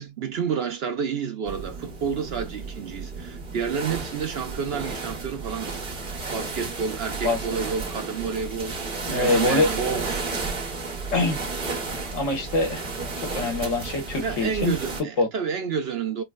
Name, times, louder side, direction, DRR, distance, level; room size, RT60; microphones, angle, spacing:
voice 1, 0.0-5.8 6.3-8.8 9.1-10.3 14.2-16.2, right 6 dB, 60° right, 0.7 m, -30 dB
sound 1, 1.5-15.0, right 4 dB, 40° right, 1.2 m, -32 dB
voice 2, 9.1-9.7 11.1-11.4 12.1-12.9 13.2-14.7 15.2-15.3, left 2 dB, 70° left, 1.7 m, -24 dB
4.5 x 2.1 x 2.2 m
omnidirectional pair, 1.4 m